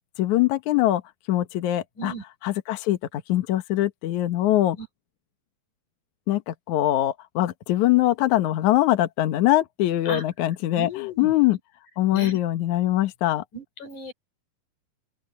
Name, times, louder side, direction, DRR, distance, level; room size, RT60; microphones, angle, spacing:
voice 1, 0.2-1.0 1.3-2.1 2.4-4.8 6.3-10.9 11.2-11.6 12.0-13.4, left 14 dB, 80° left, 1.7 m, -22 dB
voice 2, 10.7-11.3 12.1-12.4 13.5-14.1, equal, 40° left, 6.4 m, -35 dB
open air
omnidirectional pair, 5.3 m